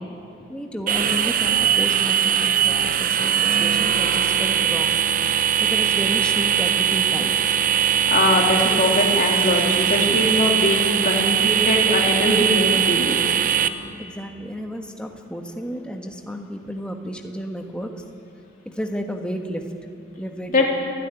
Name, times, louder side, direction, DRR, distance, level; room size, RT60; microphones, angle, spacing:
voice 1, 0.5-5.0 5.6-7.5 14.0-18.0 18.6-19.6 20.2-20.6, equal, 5° left, 3 dB, 1.3 m, -32 dB
sound 1, 0.9-13.7, right 9 dB, 40° right, 0.8 m, -20 dB
voice 2, 8.1-13.2 20.5-20.7, left 2 dB, 40° left, -1 dB, 3.2 m, -21 dB
29.5 x 11.0 x 10.0 m, 2.6 s
head